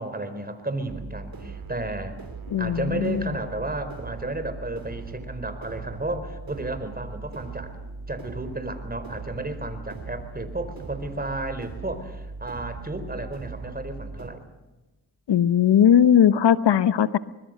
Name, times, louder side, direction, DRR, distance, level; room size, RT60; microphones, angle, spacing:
voice 1, 0.0-2.2 2.6-7.8 8.1-14.4, right 2 dB, 20° right, 9 dB, 4.5 m, -33 dB
sound 1, 0.9-14.3, right 4 dB, 55° right, 3.3 m, -39 dB
voice 2, 2.5-3.4 15.3-17.2, left 9 dB, 75° left, 15 dB, 1.0 m, -19 dB
25.0 x 22.0 x 6.6 m, 1.1 s
cardioid pair, 55°, 42 cm